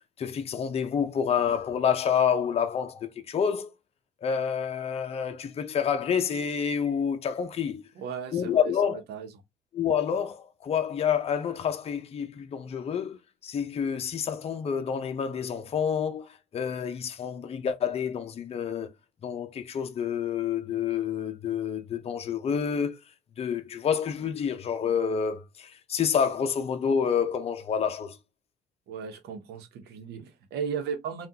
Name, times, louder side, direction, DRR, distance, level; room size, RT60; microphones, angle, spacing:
voice 1, 0.2-3.7 4.2-7.8 8.3-9.0 9.7-18.9 19.2-23.0 23.4-28.2, left 7 dB, 35° left, 0.6 m, -28 dB
voice 2, 8.0-9.3 28.9-31.3, right 6 dB, 75° right, 1.0 m, -36 dB
3.6 x 2.4 x 2.8 m
cardioid pair, 110°, 17 cm